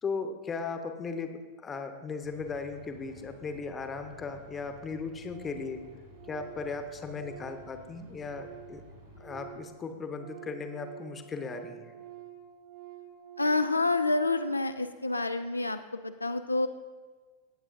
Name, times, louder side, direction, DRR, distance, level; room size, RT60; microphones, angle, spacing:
voice 1, 0.0-5.8 6.3-8.8 9.2-11.9, left 4 dB, 20° left, 7 dB, 0.9 m, -37 dB
sound 1, 2.2-9.4, equal, 70° right, 3.0 m, -53 dB
Organ, 4.2-4.3 4.6-5.0 5.3-8.9 9.1-14.8, right 12 dB, 40° right, 1.5 m, -49 dB
voice 2, 13.4-16.7, left 3 dB, 85° left, 8 dB, 0.3 m, -28 dB
17.5 x 7.9 x 2.6 m, 1.5 s
figure-of-eight pair, 90°, 0 cm